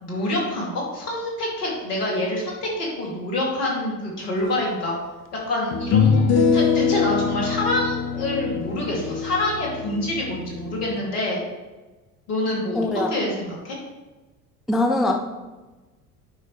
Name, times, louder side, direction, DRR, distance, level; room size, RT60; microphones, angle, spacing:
voice 1, 0.0-5.0 5.3-11.4 12.3-13.8, left 1 dB, 70° left, -3 dB, 2.6 m, -26 dB
sound 1, 4.6-4.7 5.7-11.0, left 6 dB, 35° left, 0.8 m, -23 dB
voice 2, 12.7-13.1 14.7-15.2, left 2 dB, ahead, 3 dB, 0.5 m, -21 dB
9.7 x 5.3 x 3.2 m, 1.2 s
figure-of-eight pair, 70°, 47 cm